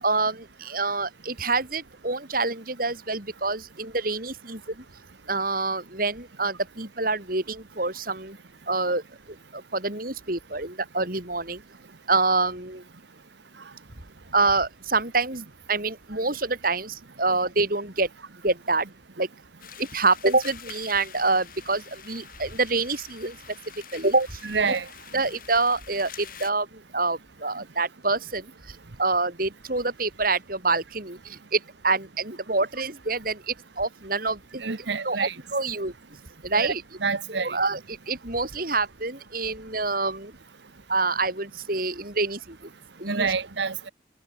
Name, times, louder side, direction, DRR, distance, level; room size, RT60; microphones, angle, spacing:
voice 1, 0.0-4.8 5.3-8.4 8.7-9.0 9.5-11.6 12.1-12.8 14.3-18.1 18.4-18.9 19.2-19.3 19.8-23.4 23.9-24.4 24.7-24.8 25.1-34.6 35.0-35.9 36.4-36.8 37.3-40.3 40.9-42.7 43.0-43.3, right 3 dB, 45° right, 3.8 m, -26 dB
sound 1, 19.6-26.5, left 9 dB, 45° left, 4.3 m, -46 dB
voice 2, 24.5-24.9 34.6-35.3 36.5-36.7 37.0-37.6 43.1-43.9, right 5 dB, 65° right, 1.0 m, -27 dB
head